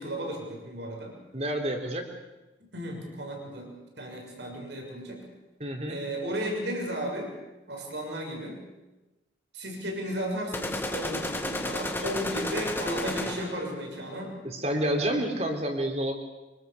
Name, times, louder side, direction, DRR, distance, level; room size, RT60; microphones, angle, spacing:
voice 1, 0.0-1.2 2.7-3.7 4.0-5.2 5.9-7.3 7.7-8.6 9.5-14.4, equal, 75° right, 1 dB, 6.6 m, -34 dB
voice 2, 1.3-2.1 5.6-6.0 14.4-16.1, right 1 dB, 35° right, 3 dB, 3.7 m, -29 dB
sound 1, 10.5-13.7, left 1 dB, 10° left, 1.8 m, -32 dB
25.0 x 24.5 x 7.1 m, 1.1 s
head